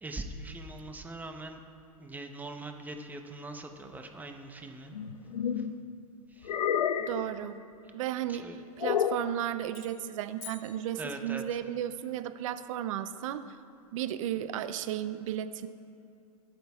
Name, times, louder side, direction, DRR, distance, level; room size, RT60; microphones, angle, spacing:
voice 1, 0.0-1.6 2.0-4.9 5.6-5.7 6.3-6.5 8.3-8.6 10.9-11.6, right 2 dB, 10° right, 5 dB, 0.9 m, -42 dB
sound 1, 4.9-5.7 6.4-7.3 8.8-9.3, left 8 dB, 85° left, 0.6 m, -29 dB
voice 2, 7.0-7.6 7.9-13.6 13.9-15.7, right 11 dB, 60° right, 11 dB, 0.7 m, -34 dB
sound 2, 9.7-11.6, left 10 dB, 45° left, 1.5 m, -50 dB
21.5 x 8.8 x 2.4 m, 2.7 s
hypercardioid pair, 120°, 19 cm